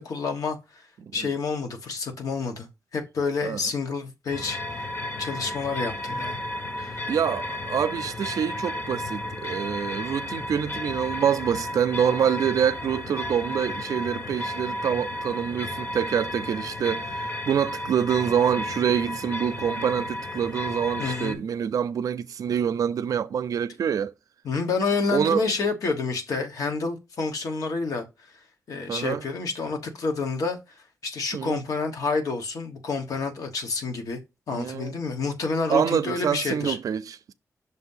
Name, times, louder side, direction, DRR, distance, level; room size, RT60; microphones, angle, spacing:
voice 1, 0.0-0.9 1.1-4.8 5.2-6.4 6.8-7.0 21.0-21.4 24.4-28.1 28.7-34.2 34.5-36.8, left 4 dB, 80° left, 1.3 m, -29 dB
sound 1, 4.3-21.4, left 1 dB, 40° left, 0.9 m, -33 dB
voice 2, 7.1-24.1 25.1-25.5 28.9-29.2 31.3-31.6 34.5-34.9 35.7-37.3, right 8 dB, 80° right, 0.5 m, -26 dB
6.3 x 2.7 x 5.4 m
wide cardioid pair, 135°, 6 cm